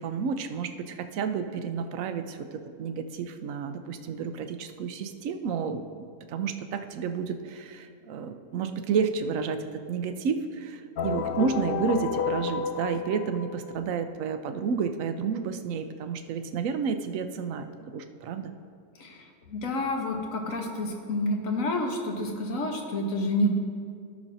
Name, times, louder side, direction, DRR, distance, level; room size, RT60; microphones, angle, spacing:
voice 1, 0.0-18.5, right 6 dB, 70° right, 8 dB, 1.0 m, -31 dB
sound 1, 11.0-13.8, left 6 dB, 85° left, 0.5 m, -31 dB
voice 2, 19.0-23.6, left 1 dB, 65° left, 2 dB, 1.4 m, -29 dB
17.0 x 6.1 x 2.7 m, 2.3 s
omnidirectional pair, 1.5 m